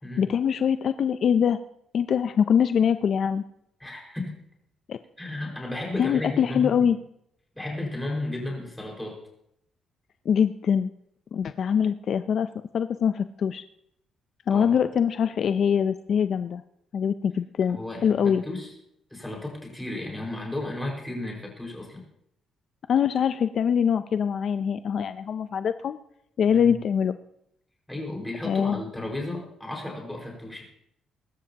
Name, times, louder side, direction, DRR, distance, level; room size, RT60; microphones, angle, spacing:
voice 1, 0.2-1.6 1.9-3.4 4.9-5.0 6.0-7.0 10.3-10.9 11.3-12.5 12.7-13.6 14.5-16.6 16.9-17.8 18.0-18.4 22.9-26.0 26.4-27.2 28.4-28.8, left 7 dB, 50° left, 11 dB, 0.5 m, -23 dB
voice 2, 3.8-4.4 5.2-6.8 7.6-9.2 14.5-14.7 17.7-18.7 19.1-22.0 26.5-26.7 27.9-30.6, left 2 dB, 5° left, -1 dB, 5.0 m, -34 dB
23.0 x 12.5 x 2.9 m, 0.75 s
cardioid pair, 135°, 0 cm